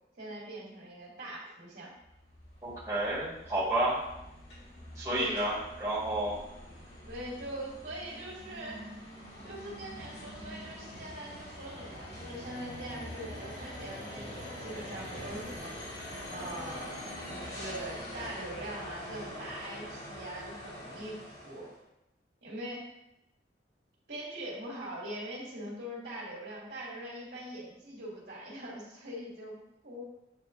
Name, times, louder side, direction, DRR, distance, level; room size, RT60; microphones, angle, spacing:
voice 1, 0.2-1.9 5.1-5.5 7.1-8.9 9.4-15.8 16.3-21.7 22.4-22.9 24.1-30.0, right 1 dB, 65° right, -7 dB, 2.2 m, -42 dB
sound 1, 2.0-21.8, left 1 dB, 70° left, 2.5 m, -44 dB
voice 2, 2.6-4.0 5.0-6.4, right 1 dB, 20° right, -9 dB, 1.8 m, -30 dB
9.4 x 4.4 x 2.6 m, 0.88 s
head